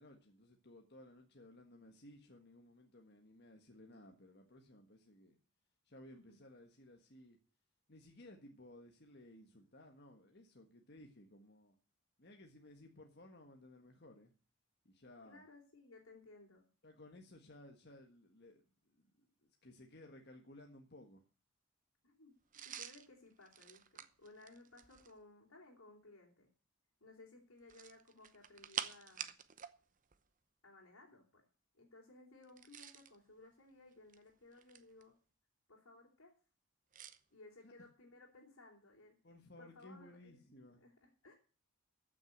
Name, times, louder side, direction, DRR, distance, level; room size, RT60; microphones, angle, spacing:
voice 1, 0.0-5.4 5.8-7.4 7.9-11.8 12.2-14.3 14.8-15.4 16.8-21.2 37.6-37.9 39.2-40.8, left 1 dB, 50° left, 3 dB, 1.6 m, -58 dB
voice 2, 15.2-16.6 22.0-22.3 22.6-26.5 27.0-29.3 30.6-31.5 31.7-35.1 35.7-36.3 37.3-39.1 39.6-41.3, left 2 dB, 75° left, -3 dB, 3.7 m, -60 dB
sound 1, 22.5-25.2 27.6-29.8 30.0-30.2 32.4-33.2 33.9-35.0 36.9-37.2, right 8 dB, 40° right, 0.8 m, -47 dB
14.5 x 6.3 x 7.9 m, 0.37 s
head